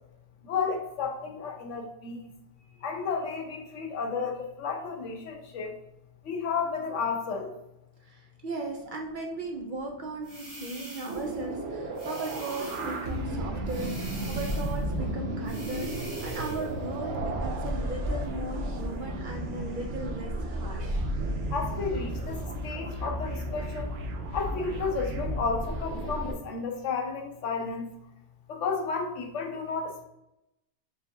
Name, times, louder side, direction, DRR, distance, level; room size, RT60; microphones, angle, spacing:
voice 1, 0.4-2.3 2.8-5.7 6.2-7.6 21.5-24.0 24.3-27.9 28.5-30.0, left 5 dB, 90° left, 3 dB, 1.1 m, -32 dB
voice 2, 8.0-21.1, right 2 dB, 55° right, 1 dB, 0.6 m, -37 dB
sound 1, 10.2-11.3 11.9-13.1 13.7-14.8 15.4-16.7, right 1 dB, 30° right, 1.7 m, -45 dB
sound 2, 11.1-26.3, right 1 dB, 75° right, 1.0 m, -33 dB
4.4 x 3.4 x 2.7 m, 0.84 s
omnidirectional pair, 1.2 m